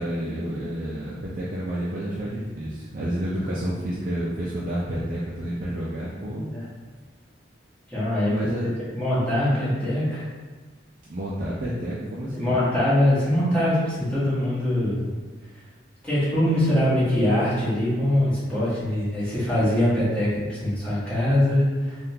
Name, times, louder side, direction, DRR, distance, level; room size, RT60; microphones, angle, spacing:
voice 1, 0.0-6.5 8.3-8.7 11.1-12.6, right 1 dB, 45° right, -7 dB, 0.4 m, -30 dB
voice 2, 6.3-6.6 7.9-8.3 8.9-10.3 12.3-15.1 16.0-22.0, left 1 dB, 5° left, -11 dB, 1.2 m, -23 dB
3.6 x 2.4 x 2.8 m, 1.4 s
head